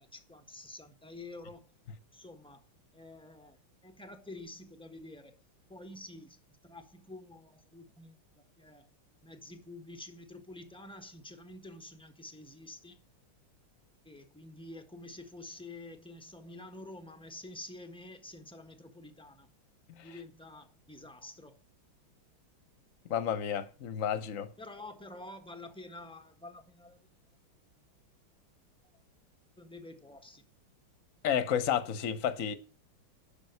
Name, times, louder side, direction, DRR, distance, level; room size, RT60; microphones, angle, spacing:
voice 1, 0.0-1.7 2.1-2.6 2.9-5.4 5.7-8.9 9.2-13.0 14.0-19.5 20.0-21.6 24.6-27.1 28.9-29.0 29.6-30.5, left 2 dB, 5° left, 1.2 m, -49 dB
voice 2, 23.1-24.5 31.2-32.5, left 9 dB, 45° left, 1.4 m, -31 dB
11.0 x 6.2 x 8.2 m
omnidirectional pair, 2.2 m